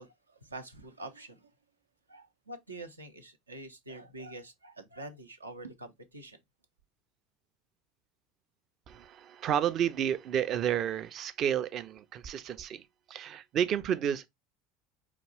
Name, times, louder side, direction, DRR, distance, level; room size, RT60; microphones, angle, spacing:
voice 1, 0.0-1.5 2.1-6.4, right 2 dB, 90° right, 0.7 m, -46 dB
voice 2, 8.9-14.3, right 9 dB, 45° right, 0.5 m, -31 dB
5.0 x 2.3 x 3.2 m
figure-of-eight pair, 75°, 0 cm